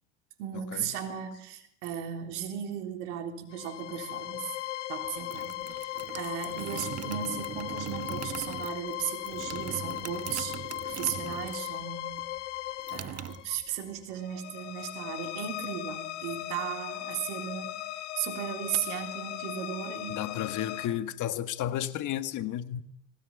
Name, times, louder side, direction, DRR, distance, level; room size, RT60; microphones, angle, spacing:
voice 1, 0.4-4.5 4.9-10.6 10.8-12.2 12.9-17.7 18.2-20.4, right 9 dB, 75° right, 3.7 m, -36 dB
sound 1, 3.5-20.9, left 14 dB, 85° left, 1.6 m, -38 dB
sound 2, 5.0-11.8 12.1-14.0, right 10 dB, 45° right, 1.4 m, -41 dB
voice 2, 20.1-22.8, left 11 dB, 55° left, 1.8 m, -32 dB
20.5 x 19.0 x 9.6 m
hypercardioid pair, 70°, 36 cm